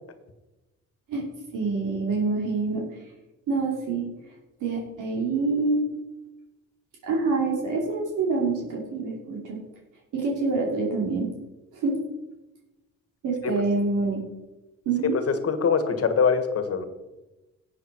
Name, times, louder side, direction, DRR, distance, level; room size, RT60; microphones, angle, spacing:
voice 1, 1.5-2.8 3.5-4.0 4.6-5.9 7.0-9.6 10.1-11.3 11.7-12.0 13.2-14.2 14.8-15.2, right 3 dB, 90° right, -2 dB, 2.8 m, -26 dB
voice 2, 15.0-16.8, left 6 dB, 50° left, 9 dB, 1.7 m, -23 dB
12.0 x 8.5 x 4.6 m, 1.0 s
cardioid pair, 90°, 30 cm